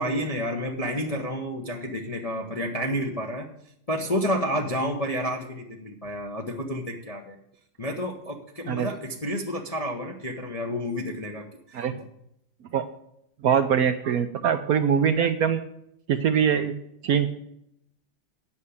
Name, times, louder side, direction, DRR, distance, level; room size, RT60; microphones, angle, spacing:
voice 1, 0.0-3.5 3.9-7.4 7.8-12.0, equal, 35° left, 1 dB, 0.6 m, -30 dB
voice 2, 13.4-15.6 16.1-16.7 17.0-17.3, right 8 dB, 70° right, 10 dB, 0.8 m, -22 dB
8.6 x 6.7 x 8.4 m, 0.76 s
omnidirectional pair, 2.1 m